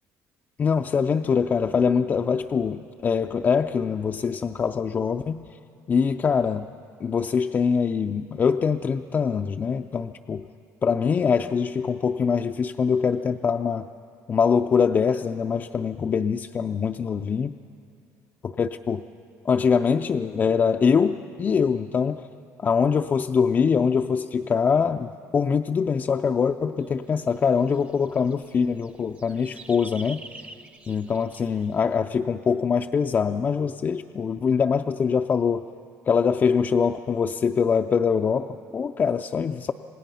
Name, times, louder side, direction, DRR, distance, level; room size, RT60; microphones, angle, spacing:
voice 1, 0.6-5.5 5.9-6.7 7.0-10.5 10.8-13.9 14.3-17.5 18.4-19.0 19.4-22.3 22.6-30.3 30.9-35.7 36.1-39.7, left 6 dB, 30° left, 5 dB, 0.4 m, -23 dB
sound 1, 26.8-31.9, right 3 dB, 20° right, 0.8 m, -47 dB
27.0 x 18.0 x 5.5 m, 2.4 s
cardioid pair, 135°, 6 cm